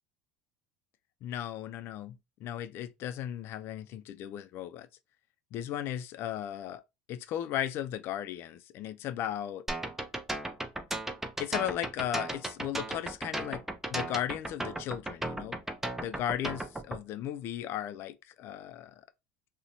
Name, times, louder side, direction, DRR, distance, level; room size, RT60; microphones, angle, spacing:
voice 1, 1.2-4.9 5.5-6.8 7.1-9.7 11.4-13.6 13.9-15.6 16.0-19.0, left 11 dB, 55° left, 0.3 m, -36 dB
sound 1, 9.7-17.0, right 1 dB, 5° right, 0.5 m, -35 dB
2.5 x 2.1 x 2.8 m
hypercardioid pair, 90°, 5 cm